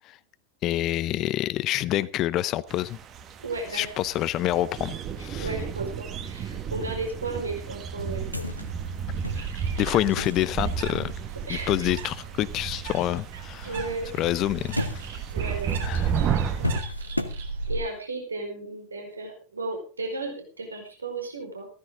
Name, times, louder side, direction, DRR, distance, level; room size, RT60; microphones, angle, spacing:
voice 1, 0.6-3.0 3.7-5.5 9.4-9.5 9.8-11.1 11.5-13.8 14.2-14.8 15.8-16.1, left 14 dB, 35° left, 0.7 m, -27 dB
sound 1, 2.7-16.8, right 7 dB, 30° right, 1.7 m, -33 dB
voice 2, 3.4-4.0 5.4-8.2 11.5-11.7 13.6-14.1 15.3-16.7 17.7-21.7, right 3 dB, 75° right, 4.8 m, -34 dB
sound 2, 8.0-13.1 13.4-17.8, equal, 90° left, 1.6 m, -35 dB
Bird, 9.1-18.0, right 6 dB, 60° right, 4.1 m, -43 dB
16.0 x 14.0 x 3.7 m
figure-of-eight pair, 90°, 0 cm